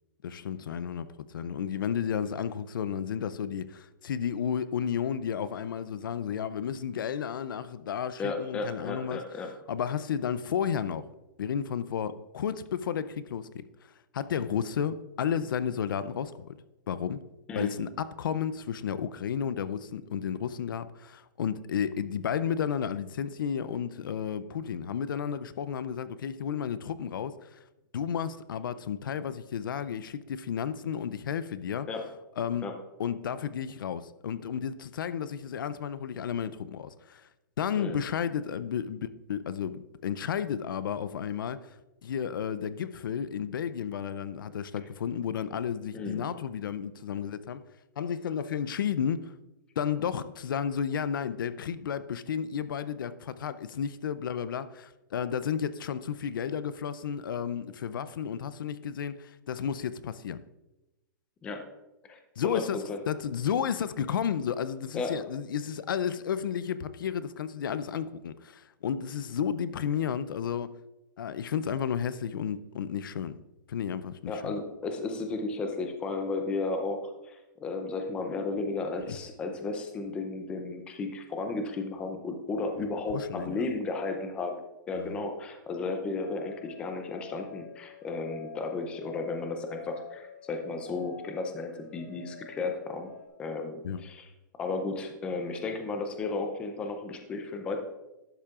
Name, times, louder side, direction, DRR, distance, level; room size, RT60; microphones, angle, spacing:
voice 1, 0.2-9.2 9.7-11.0 11.4-13.6 14.1-16.5 16.9-17.2 17.5-27.6 27.9-31.9 32.4-32.7 33.0-37.3 37.6-41.8 42.0-47.6 48.0-49.3 49.8-60.4 62.4-70.7 71.2-73.4 73.7-74.5 79.1-79.2 83.1-83.6 85.0-85.2 93.8-94.0, left 8 dB, 80° left, 0.5 m, -32 dB
voice 2, 8.2-9.5 17.5-17.7 31.9-32.1 32.6-32.7 37.8-38.0 45.9-46.3 61.4-61.7 62.0-63.0 64.9-65.2 74.3-93.1 93.4-94.3 94.6-97.8, left 3 dB, 10° left, 0.5 m, -34 dB
sound 1, 86.2-93.3, left 6 dB, 50° left, 1.2 m, -48 dB
12.0 x 7.2 x 2.4 m
hypercardioid pair, 170°, 11 cm